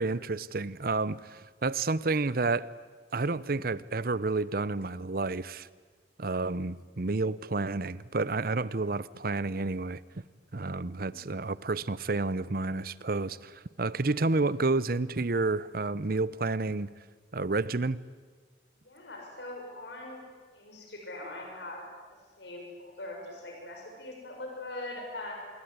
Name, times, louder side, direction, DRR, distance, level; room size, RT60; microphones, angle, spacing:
voice 1, 0.0-2.7 3.1-5.7 6.2-10.0 10.5-16.9 17.3-18.0, right 3 dB, 55° right, 18 dB, 0.8 m, -30 dB
voice 2, 18.8-20.2 20.5-21.8 22.4-25.3, left 2 dB, 85° left, 1 dB, 6.8 m, -42 dB
27.0 x 21.0 x 9.6 m, 1.5 s
head